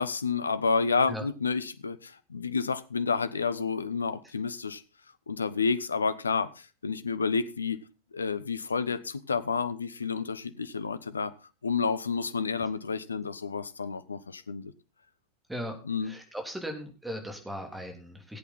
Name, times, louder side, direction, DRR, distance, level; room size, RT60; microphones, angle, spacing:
voice 1, 0.0-4.8 5.3-7.8 8.1-11.3 11.6-14.7 15.8-16.1, left 5 dB, 75° left, 0.8 m, -30 dB
voice 2, 16.0-18.4, equal, 5° right, 3.3 m, -37 dB
18.0 x 8.3 x 4.2 m
figure-of-eight pair, 90°, 0 cm